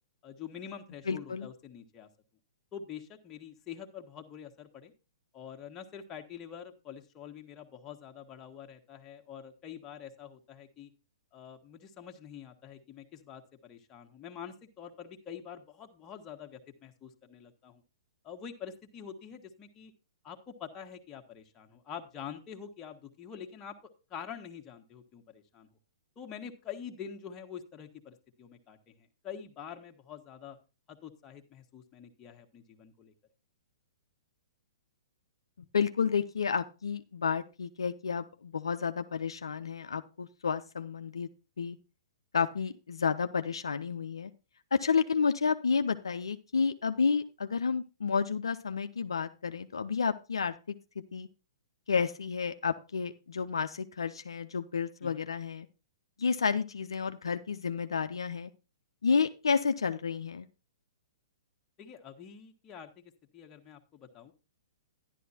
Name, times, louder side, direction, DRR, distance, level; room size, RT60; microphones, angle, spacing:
voice 1, 0.2-2.1 2.7-4.9 5.3-10.9 11.3-17.8 18.2-19.9 20.2-23.8 24.1-25.7 26.2-30.6 30.9-33.1 55.0-55.2 61.8-64.3, left 8 dB, 25° left, 3 dB, 1.4 m, -46 dB
voice 2, 1.1-1.5 35.7-41.3 41.6-41.8 42.3-44.3 44.7-50.8 51.1-51.3 51.9-55.7 56.2-58.5 59.0-60.5, left 5 dB, 75° left, 9 dB, 0.6 m, -30 dB
11.5 x 11.0 x 2.8 m, 0.31 s
figure-of-eight pair, 120°, 3 cm